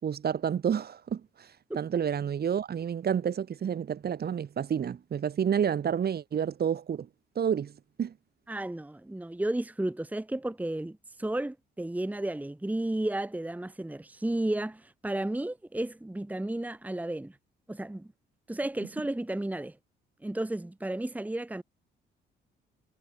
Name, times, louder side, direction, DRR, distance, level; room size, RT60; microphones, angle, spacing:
voice 1, 0.0-1.5 1.7-7.1 7.3-7.7 8.0-8.1, right 8 dB, 55° right, 2.8 m, -29 dB
voice 2, 8.5-17.4 17.7-18.1 18.5-19.8 20.2-21.6, right 1 dB, 10° right, 1.4 m, -33 dB
cardioid pair, 90°, 20 cm